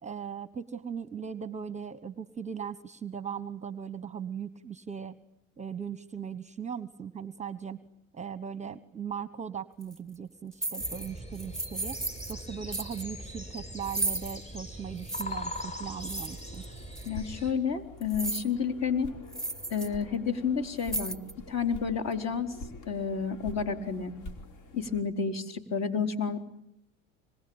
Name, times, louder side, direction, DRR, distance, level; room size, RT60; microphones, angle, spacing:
voice 1, 0.0-5.2 5.6-7.8 8.1-12.0 12.3-16.6, right 7 dB, 20° right, 15 dB, 1.1 m, -38 dB
sound 1, 9.8-10.0 10.5-11.1 11.3-12.4 12.7-13.0 13.8-14.4 15.0-15.2 16.0-16.7 17.0-17.1 18.0-18.5 18.9-19.0 19.3-19.9 20.2-20.3 20.8-21.4, right 2 dB, ahead, 0.9 m, -34 dB
sound 2, 10.8-17.5, equal, 15° left, 7.6 m, -41 dB
sound 3, 16.3-25.0, left 2 dB, 55° left, 4.5 m, -47 dB
voice 2, 17.1-19.1 19.7-21.2 21.5-22.6 22.9-24.1 24.7-26.4, left 6 dB, 40° left, 6 dB, 4.2 m, -30 dB
26.0 x 22.0 x 8.9 m, 0.74 s
supercardioid pair, 105°, 39 cm